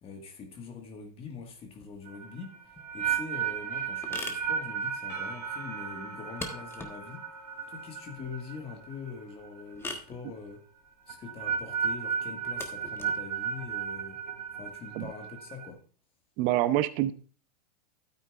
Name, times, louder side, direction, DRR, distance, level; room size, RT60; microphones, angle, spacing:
voice 1, 0.0-7.3 7.7-10.6 11.1-14.2 14.5-15.8, left 5 dB, 30° left, 3 dB, 1.8 m, -43 dB
sound 1, 2.1-9.2 9.4-9.9 11.1-15.7, right 7 dB, 90° right, 2.0 m, -34 dB
sound 2, 2.6-15.1, left 3 dB, 10° left, 1.4 m, -46 dB
Percussion / Church bell, 5.1-10.3, equal, 80° left, 3.1 m, -49 dB
voice 2, 16.4-17.1, right 14 dB, 40° right, 13 dB, 0.7 m, -26 dB
12.0 x 9.0 x 2.5 m, 0.40 s
hypercardioid pair, 120°, 21 cm